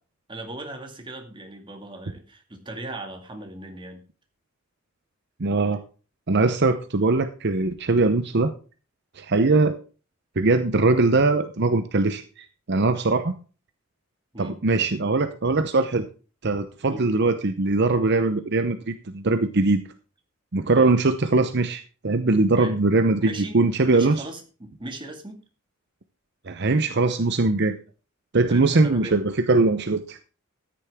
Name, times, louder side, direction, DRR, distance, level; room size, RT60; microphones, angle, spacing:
voice 1, 0.3-4.0 9.4-9.6 14.3-14.6 16.9-17.1 20.7-20.9 22.5-22.8 23.2-23.6 23.9-25.4 28.5-29.2, right 2 dB, 25° right, 4 dB, 2.3 m, -38 dB
voice 2, 5.4-5.8 6.3-8.5 9.2-9.8 10.4-13.3 14.4-16.1 16.4-19.8 20.5-24.2 26.5-27.7 28.3-30.2, right 3 dB, 55° right, 9 dB, 0.8 m, -21 dB
13.5 x 10.0 x 3.6 m, 0.36 s
head